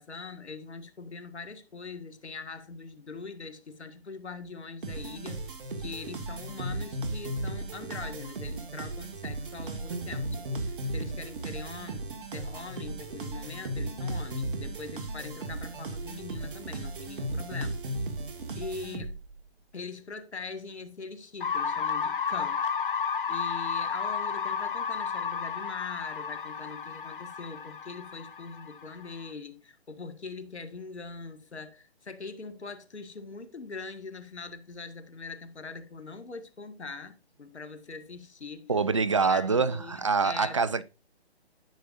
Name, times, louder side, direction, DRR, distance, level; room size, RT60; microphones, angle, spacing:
voice 1, 0.0-5.5 5.8-17.8 18.5-19.2 19.7-22.6 23.3-38.7 39.2-40.8, left 4 dB, 85° left, 1.8 m, -42 dB
sound 1, 4.8-19.4, right 1 dB, 50° right, 1.9 m, -36 dB
sound 2, 21.4-29.3, left 6 dB, 50° left, 1.0 m, -32 dB
voice 2, 38.7-40.8, right 4 dB, 30° right, 0.4 m, -25 dB
10.0 x 6.8 x 2.6 m
hypercardioid pair, 155°, 33 cm